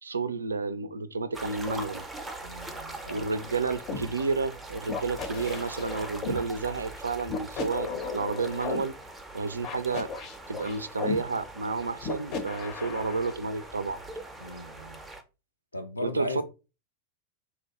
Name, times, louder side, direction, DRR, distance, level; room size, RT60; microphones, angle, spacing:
voice 1, 0.0-2.0 3.1-9.0 9.3-10.1 10.5-14.0 16.0-16.4, right 4 dB, 75° right, 0.3 m, -31 dB
sound 1, 1.3-15.2, right 2 dB, 10° right, 0.5 m, -42 dB
voice 2, 2.4-3.4 14.4-15.0 15.7-16.4, left 1 dB, 85° left, 0.5 m, -37 dB
sound 2, 3.9-4.0 4.9-6.4 7.3-8.8 9.6-11.2 12.0-13.3, left 4 dB, 40° left, 0.6 m, -34 dB
2.8 x 2.1 x 2.8 m
figure-of-eight pair, 90°, 0 cm